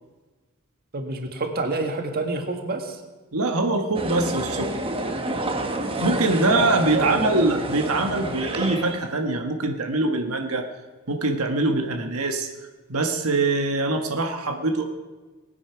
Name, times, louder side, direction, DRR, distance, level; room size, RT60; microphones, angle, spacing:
voice 1, 0.9-3.0 6.9-7.2, right 2 dB, 45° right, 4 dB, 1.6 m, -28 dB
voice 2, 3.3-4.7 6.0-10.6 11.1-12.5 12.9-14.8, right 2 dB, 80° right, 4 dB, 1.4 m, -23 dB
sound 1, 3.9-9.2, right 2 dB, 25° right, 1.1 m, -29 dB
19.5 x 9.6 x 5.9 m, 1.3 s
head